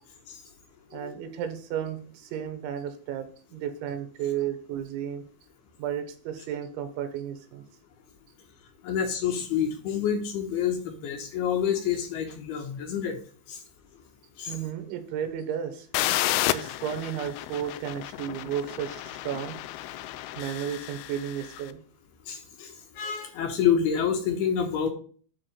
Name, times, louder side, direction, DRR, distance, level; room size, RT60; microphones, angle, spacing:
voice 1, 0.9-5.2 5.8-7.6 14.5-15.9 16.5-19.6 20.4-21.8, right 9 dB, 85° right, 9 dB, 3.5 m, -33 dB
voice 2, 8.8-13.2 13.5-13.6 14.4-14.5 19.3-19.4 22.3-24.9, left 8 dB, 70° left, 5 dB, 2.8 m, -28 dB
sound 1, 15.9-21.6, left 15 dB, 90° left, 2.9 m, -32 dB
9.7 x 4.1 x 6.8 m, 0.43 s
omnidirectional pair, 5.3 m